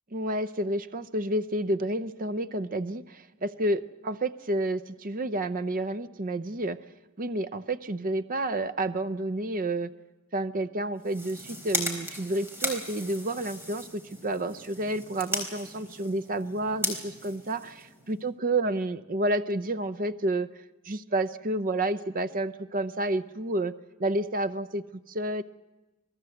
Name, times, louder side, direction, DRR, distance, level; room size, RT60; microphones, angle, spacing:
voice 1, 0.1-6.8 7.2-9.9 10.3-20.5 20.8-23.7 24.0-25.4, right 1 dB, 40° right, 13 dB, 0.7 m, -30 dB
sound 1, 11.0-18.2, equal, 10° right, 3.8 m, -36 dB
27.0 x 18.5 x 7.9 m, 1.1 s
head